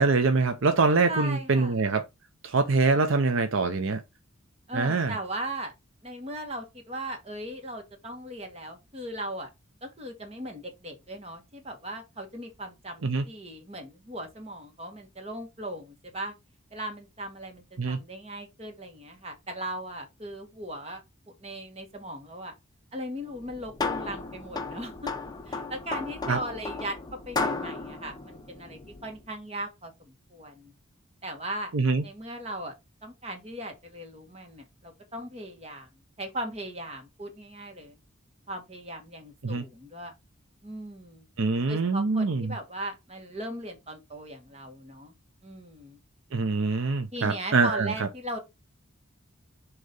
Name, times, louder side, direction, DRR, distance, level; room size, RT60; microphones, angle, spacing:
voice 1, 0.0-2.0 2.4-4.0 4.7-5.1 13.0-13.2 17.8-18.0 26.3-26.4 31.7-32.0 39.4-39.6 41.4-42.5 46.3-48.1, right 4 dB, 65° right, 0.6 m, -24 dB
voice 2, 1.1-1.8 4.7-5.7 6.0-9.5 9.8-16.3 16.7-21.0 21.4-22.5 22.9-25.1 25.5-27.0 27.3-30.7 31.2-31.7 32.0-32.7 33.0-35.9 36.2-38.0 38.5-40.1 40.6-41.3 41.7-45.1 45.4-46.0 47.1-48.4, right 1 dB, 30° right, 1.6 m, -38 dB
sound 1, 23.3-29.2, left 3 dB, 20° left, 0.7 m, -34 dB
6.5 x 3.0 x 5.3 m
head